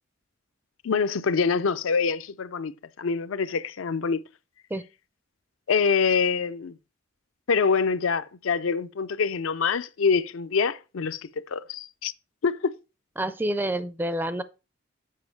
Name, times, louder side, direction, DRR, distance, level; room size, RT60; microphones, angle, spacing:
voice 1, 0.8-2.7 3.0-4.2 5.7-6.8 7.5-11.2 11.5-12.1 12.4-12.7, left 5 dB, 85° left, 0.5 m, -25 dB
voice 2, 13.2-14.4, right 1 dB, 10° right, 0.4 m, -28 dB
7.5 x 5.0 x 4.5 m
head